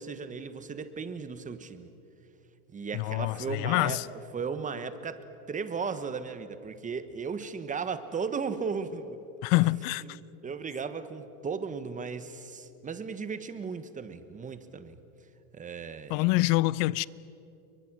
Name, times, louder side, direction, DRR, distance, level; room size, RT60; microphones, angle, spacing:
voice 1, 0.0-1.9 2.7-9.2 10.0-10.1 10.4-15.0 15.5-16.3, right 5 dB, 15° right, 1.3 m, -36 dB
voice 2, 2.9-4.1 9.4-10.2 16.1-17.1, left 20 dB, 50° left, 0.6 m, -26 dB
29.5 x 23.5 x 6.2 m
supercardioid pair, 130°, 44 cm